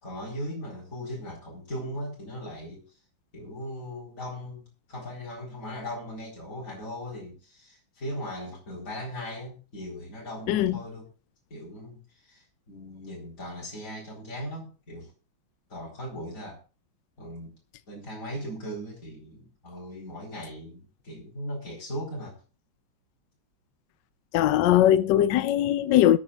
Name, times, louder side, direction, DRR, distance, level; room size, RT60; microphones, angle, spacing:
voice 1, 0.0-2.8 3.3-11.1 11.5-15.1 15.7-16.6 17.2-17.5 17.9-22.4, equal, 40° left, 4.5 m, -38 dB
voice 2, 10.5-10.8 24.3-26.2, left 12 dB, 70° left, 1.2 m, -20 dB
23.0 x 8.5 x 2.4 m
omnidirectional pair, 2.2 m